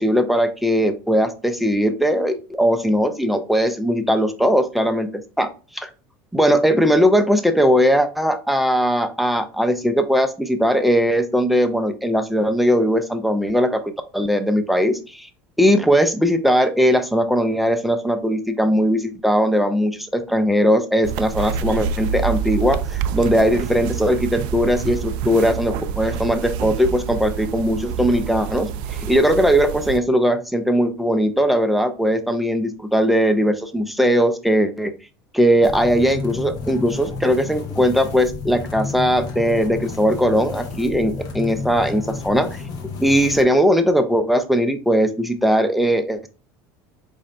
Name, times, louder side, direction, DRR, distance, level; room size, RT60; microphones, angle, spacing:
voice 1, 0.0-5.1 5.4-5.9 6.3-15.3 15.6-28.7 29.0-34.9 35.3-42.6 43.0-46.3, equal, ahead, 7 dB, 0.5 m, -19 dB
sound 1, 21.0-30.0, right 7 dB, 70° right, 0.4 m, -27 dB
sound 2, 35.6-43.4, left 4 dB, 50° left, 1.0 m, -31 dB
4.9 x 2.7 x 3.2 m, 0.34 s
supercardioid pair, 110°, 8 cm